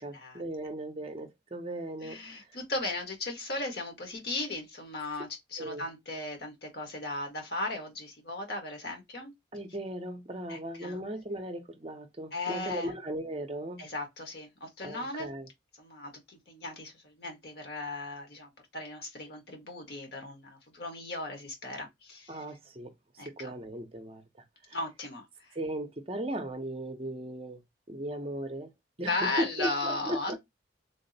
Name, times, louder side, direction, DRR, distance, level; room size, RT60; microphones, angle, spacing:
voice 1, 0.0-2.2 5.6-5.8 9.5-13.8 14.8-15.5 22.3-24.2 24.7-24.9 25.5-27.6 27.9-28.7 29.0-30.4, right 1 dB, 30° right, 0.5 m, -37 dB
voice 2, 2.0-9.3 10.5-11.0 12.3-12.9 13.8-15.3 15.8-22.4 23.2-23.5 24.7-25.5 29.1-30.4, left 2 dB, 60° left, 1.2 m, -36 dB
3.5 x 2.0 x 3.9 m
head